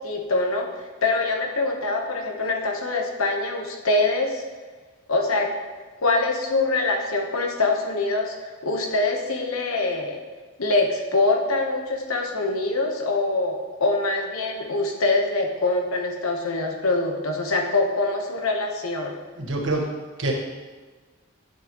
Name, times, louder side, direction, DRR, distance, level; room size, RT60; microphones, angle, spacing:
voice 1, 0.0-4.4 5.1-5.5 6.0-10.2 10.6-19.1, left 2 dB, 85° left, 2 dB, 1.1 m, -24 dB
voice 2, 19.4-19.9 20.2-20.3, right 2 dB, 60° right, 0 dB, 1.4 m, -25 dB
10.5 x 7.5 x 3.1 m, 1.4 s
head